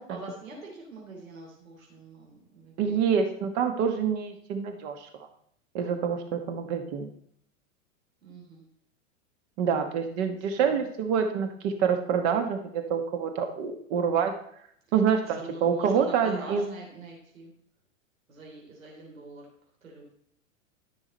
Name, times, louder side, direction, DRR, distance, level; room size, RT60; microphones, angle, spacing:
voice 1, 0.0-3.3 8.2-8.6 10.5-10.9 15.2-17.5 18.3-19.5 19.8-20.0, right 3 dB, 90° right, -1 dB, 3.4 m, -44 dB
voice 2, 2.8-5.1 5.7-7.1 9.6-14.3 14.9-16.7, right 7 dB, 55° right, 5 dB, 1.5 m, -27 dB
13.5 x 6.2 x 4.2 m, 0.67 s
hypercardioid pair, 105°, 39 cm